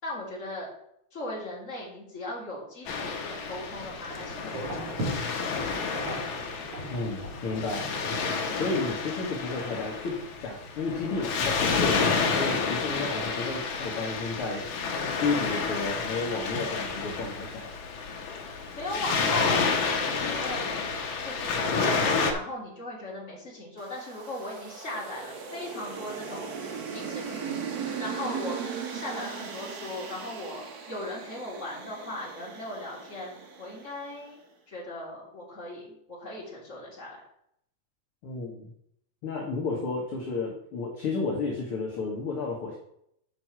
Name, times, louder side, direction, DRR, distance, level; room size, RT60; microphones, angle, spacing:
voice 1, 0.0-0.7 1.1-5.3 18.7-20.6 21.2-28.6 28.9-34.4 34.7-37.2, left 1 dB, 25° left, -4 dB, 3.1 m, -38 dB
Waves surf, 2.9-22.3, left 5 dB, 75° left, 2.4 m, -30 dB
sound 1, 3.5-10.7, right 1 dB, 50° right, 3.5 m, -40 dB
voice 2, 6.9-7.9 8.5-14.7 15.2-17.7 38.2-38.7 39.2-42.8, left 3 dB, 55° left, -2 dB, 2.1 m, -32 dB
sound 2, 23.8-34.1, right 6 dB, 80° right, 0.8 m, -38 dB
8.2 x 5.3 x 6.0 m, 0.74 s
omnidirectional pair, 3.4 m